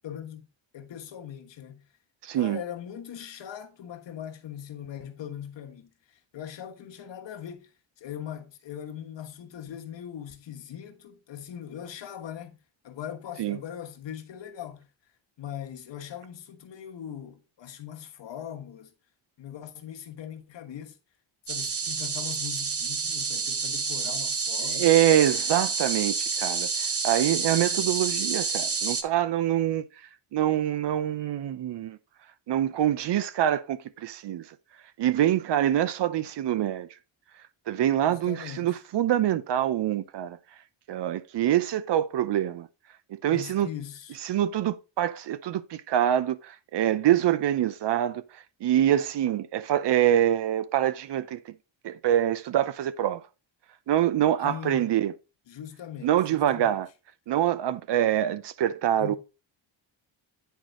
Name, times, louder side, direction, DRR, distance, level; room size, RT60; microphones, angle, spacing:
voice 1, 0.0-0.5 0.7-1.8 2.3-5.9 6.3-7.7 8.0-12.6 12.8-14.9 15.4-18.9 19.4-21.0 21.5-24.9 38.1-38.7 43.3-44.2 54.4-54.9 55.5-56.8 59.0-59.2, left 9 dB, 65° left, 1.3 m, -40 dB
voice 2, 2.2-2.6 13.4-13.6 24.6-26.7 27.0-29.8 30.3-32.0 32.5-34.4 35.0-36.9 37.7-40.4 40.9-42.7 43.1-43.7 44.2-48.2 48.6-51.4 51.8-53.2 53.9-55.1 56.0-56.9 57.3-59.1, right 11 dB, 60° right, 0.7 m, -25 dB
sound 1, 21.5-29.0, right 5 dB, 30° right, 0.8 m, -29 dB
9.2 x 4.6 x 3.8 m
cardioid pair, 140°, 48 cm